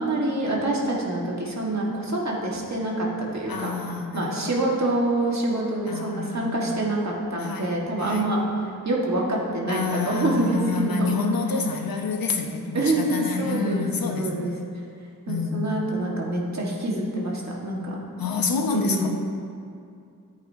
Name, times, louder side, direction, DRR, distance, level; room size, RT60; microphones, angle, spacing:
voice 1, 0.0-3.7 4.1-8.4 8.8-11.2 12.7-14.5 15.3-18.0 18.7-19.1, right 2 dB, 55° right, -3 dB, 1.6 m, -26 dB
voice 2, 3.5-4.5 5.9-6.8 7.4-8.3 9.7-14.6 15.3-15.7 18.2-19.1, left 4 dB, 85° left, 3 dB, 0.9 m, -28 dB
14.0 x 8.5 x 2.8 m, 2.4 s
wide cardioid pair, 120°, 34 cm